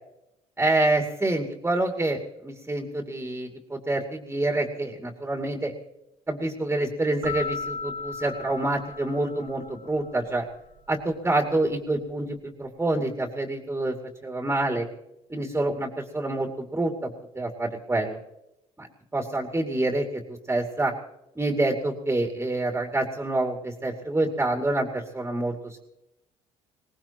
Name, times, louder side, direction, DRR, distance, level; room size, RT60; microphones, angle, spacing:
voice 1, 0.6-5.7 6.3-10.4 10.9-14.0 14.2-14.9 15.3-18.2 18.8-20.9 21.4-25.8, right 2 dB, 15° right, 2 dB, 2.6 m, -27 dB
sound 1, 7.2-10.0, left 4 dB, 75° right, 2.7 m, -36 dB
22.5 x 18.5 x 3.0 m, 0.87 s
supercardioid pair, 75°, 14 cm